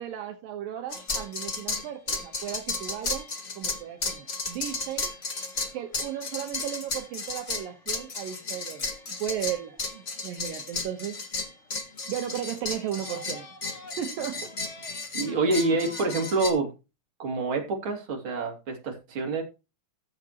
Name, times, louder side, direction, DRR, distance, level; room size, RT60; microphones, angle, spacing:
voice 1, 0.0-3.3 3.6-5.1 5.7-11.2 12.1-14.6 15.2-15.4, right 10 dB, 75° right, 2.7 m, -35 dB
sound 1, 0.9-16.5, left 3 dB, 40° left, 1.0 m, -34 dB
voice 2, 15.1-16.7 17.2-19.4, right 3 dB, 35° right, 3.3 m, -27 dB
15.5 x 7.4 x 2.9 m
omnidirectional pair, 4.2 m